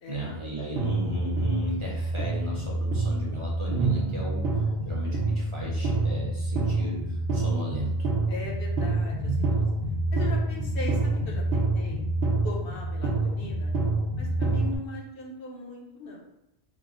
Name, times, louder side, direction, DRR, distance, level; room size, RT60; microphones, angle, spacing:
voice 1, 0.1-8.1, equal, 35° right, -5 dB, 0.6 m, -35 dB
sound 1, 0.8-14.8, right 2 dB, 75° right, 0.9 m, -27 dB
voice 2, 8.3-9.6 10.1-12.0 12.4-13.7 14.2-16.2, left 2 dB, 65° left, -1 dB, 0.9 m, -39 dB
3.3 x 2.0 x 3.7 m, 0.85 s
omnidirectional pair, 1.1 m